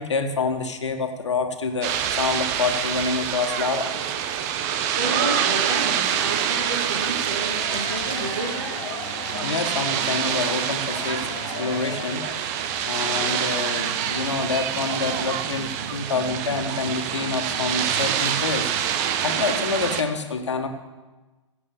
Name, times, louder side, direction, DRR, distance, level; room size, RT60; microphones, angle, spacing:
voice 1, 0.0-3.9 9.4-11.3 11.6-12.2 12.9-18.7 19.2-20.7, left 4 dB, 65° left, 6 dB, 1.8 m, -27 dB
sound 1, 1.8-20.0, right 9 dB, 35° right, 1.1 m, -26 dB
voice 2, 4.6-8.8, right 2 dB, 65° right, -3 dB, 2.9 m, -31 dB
sound 2, 7.3-12.6, left 8 dB, 25° left, 1.2 m, -38 dB
16.5 x 8.0 x 7.1 m, 1.2 s
figure-of-eight pair, 115°, 16 cm